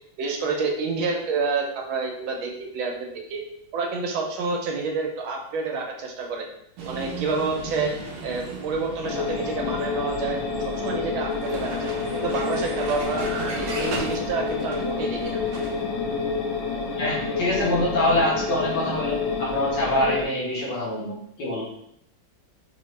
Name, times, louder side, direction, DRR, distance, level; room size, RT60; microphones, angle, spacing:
voice 1, 0.2-3.4 3.7-6.5 6.9-7.9 8.2-10.4 10.8-13.3 13.6-15.4, right 4 dB, 85° right, 1 dB, 1.5 m, -28 dB
Vehicle, 6.8-15.8, right 3 dB, 65° right, 1.0 m, -36 dB
sound 1, 9.0-20.3, left 4 dB, 85° left, 1.5 m, -28 dB
voice 2, 17.0-21.7, left 1 dB, 65° left, -6 dB, 2.0 m, -25 dB
4.2 x 2.7 x 3.2 m, 0.74 s
omnidirectional pair, 2.2 m